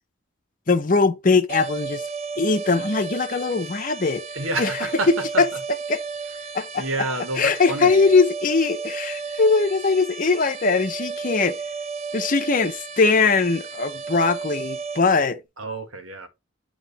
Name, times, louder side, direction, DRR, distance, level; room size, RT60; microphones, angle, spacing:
voice 1, 0.7-2.0 2.4-4.2 4.6-4.7 5.4-5.5 5.9-6.0 6.5-6.8 7.4-11.6 12.1-15.4, left 4 dB, 40° left, 0.7 m, -21 dB
sound 1, 1.5-15.0, right 5 dB, 30° right, 0.5 m, -33 dB
voice 2, 4.3-5.1 5.3-5.6 6.8-8.1 15.6-16.3, right 2 dB, 90° right, 1.5 m, -29 dB
8.8 x 3.0 x 4.1 m
head